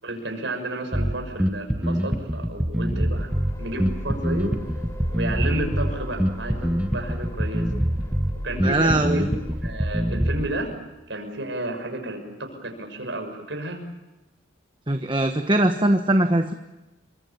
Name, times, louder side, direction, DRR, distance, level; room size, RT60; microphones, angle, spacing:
voice 1, 0.0-3.3 3.6-4.5 5.1-7.7 8.4-10.7 11.1-13.8, right 1 dB, 70° right, 4 dB, 6.4 m, -32 dB
Bass guitar, 0.9-10.5, equal, 5° right, 1.3 m, -25 dB
sound 1, 2.8-10.7, equal, 15° left, 3.3 m, -38 dB
voice 2, 8.6-9.3 14.9-16.5, right 1 dB, 25° right, 6 dB, 1.2 m, -21 dB
28.5 x 24.5 x 7.1 m, 1.0 s
head